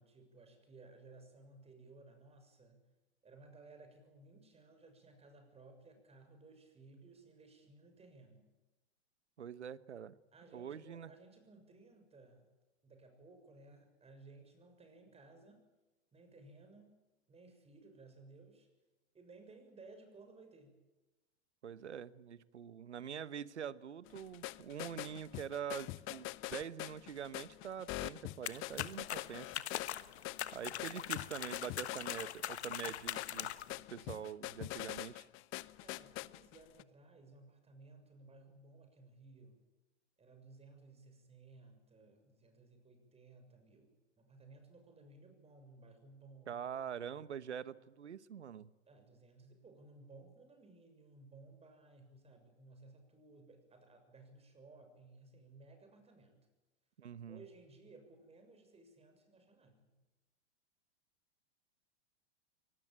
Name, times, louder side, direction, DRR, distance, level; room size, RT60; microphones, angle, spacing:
voice 1, 0.0-2.8 3.2-8.5 10.3-12.5 12.8-15.6 16.1-16.9 17.3-18.7 19.1-20.8 30.6-30.9 35.8-39.6 40.2-46.8 48.9-56.5 57.3-59.9, right 3 dB, 20° right, 6 dB, 6.8 m, -59 dB
voice 2, 9.4-10.1 10.5-11.1 21.6-29.5 30.5-33.5 33.9-35.3 46.5-48.7 57.0-57.4, right 8 dB, 85° right, 17 dB, 1.2 m, -45 dB
sound 1, 24.1-36.8, left 19 dB, 35° left, 0.8 m, -45 dB
sound 2, 28.5-33.8, left 11 dB, 70° left, 1.4 m, -42 dB
24.0 x 19.0 x 8.9 m, 1.1 s
hypercardioid pair, 100°, 34 cm